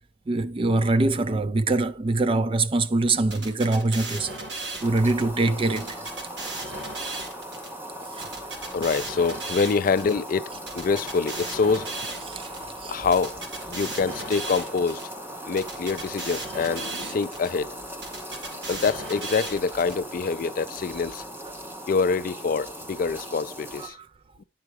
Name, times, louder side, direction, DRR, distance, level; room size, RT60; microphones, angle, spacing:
voice 1, 0.3-4.4 4.8-6.0 8.1-8.2 12.3-12.5 12.8-12.9 17.0-17.1 23.8-23.9, right 2 dB, 30° right, 0.4 m, -24 dB
sound 1, 3.3-5.2 5.8-7.7 8.2-10.1 10.7-12.6 13.1-15.0 15.6-17.5 18.0-19.9, right 2 dB, 70° right, 2.1 m, -36 dB
sound 2, 4.8-23.9, equal, 10° right, 1.0 m, -39 dB
voice 2, 8.7-11.9 12.9-13.4 13.7-15.0 15.4-17.8 18.7-21.2 21.9-24.0 24.4-24.5, left 5 dB, 50° left, 0.4 m, -25 dB
9.8 x 4.7 x 4.8 m
head